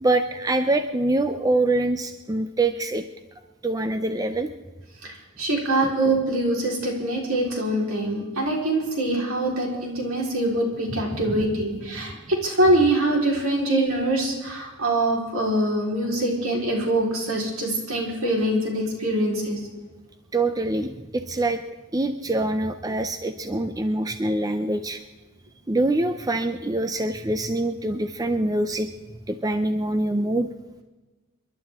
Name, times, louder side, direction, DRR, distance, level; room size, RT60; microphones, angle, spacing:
voice 1, 0.0-3.0 3.6-4.5 5.8-5.9 11.1-11.6 20.3-21.6 21.9-25.0 25.7-28.9 29.3-30.5, right 2 dB, 15° right, 8 dB, 0.5 m, -24 dB
voice 2, 5.0-19.6, right 1 dB, 70° right, -1 dB, 4.0 m, -24 dB
28.5 x 11.5 x 3.6 m, 1.2 s
head